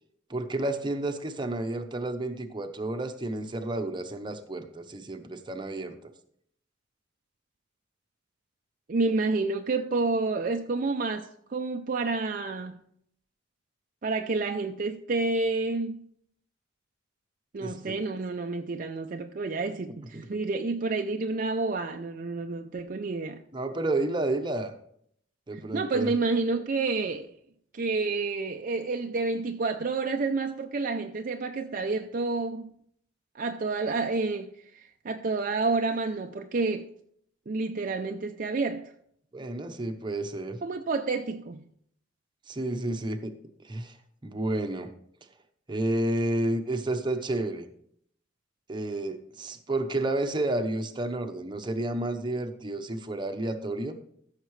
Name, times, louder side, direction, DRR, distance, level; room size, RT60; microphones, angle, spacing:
voice 1, 0.3-6.1 17.6-18.1 23.5-24.7 25.5-26.1 39.3-40.6 42.5-43.3 43.6-44.0 44.2-44.9 45.7-47.7 48.7-54.0, right 2 dB, 25° right, 0.9 m, -31 dB
voice 2, 8.9-12.8 14.0-16.0 17.5-23.4 25.5-27.3 27.7-32.7 33.3-36.9 37.5-38.9 40.6-41.6, right 3 dB, 45° right, 0.5 m, -29 dB
14.0 x 6.6 x 3.2 m
head